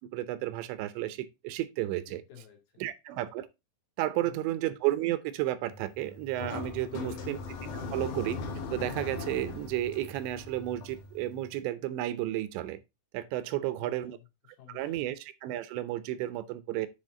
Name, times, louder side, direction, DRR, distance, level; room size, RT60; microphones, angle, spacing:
voice 1, 0.1-2.2 2.8-3.5 4.0-8.4 8.7-12.8 13.1-14.2 14.7-16.9, right 14 dB, 80° right, 2.8 m, -32 dB
voice 2, 2.1-2.9 4.2-4.5 6.8-7.3 13.5-15.1, left 11 dB, 55° left, 3.3 m, -54 dB
sound 1, 5.7-11.6, left 4 dB, 70° left, 1.8 m, -40 dB
9.9 x 4.4 x 3.7 m
omnidirectional pair, 5.4 m